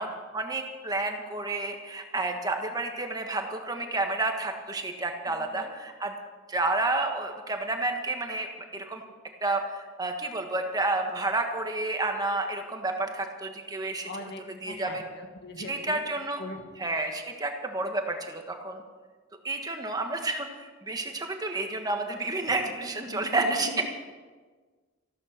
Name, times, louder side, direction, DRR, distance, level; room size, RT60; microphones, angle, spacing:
voice 1, 0.0-6.1 6.5-9.0 9.4-14.1 14.4-15.0 15.7-16.4 16.8-18.8 19.4-23.7, right 2 dB, 20° right, 4 dB, 1.4 m, -30 dB
voice 2, 5.3-5.7 14.0-16.0 16.4-16.6 22.9-23.8, left 1 dB, 60° left, 4 dB, 2.0 m, -40 dB
15.0 x 12.5 x 6.5 m, 1.4 s
head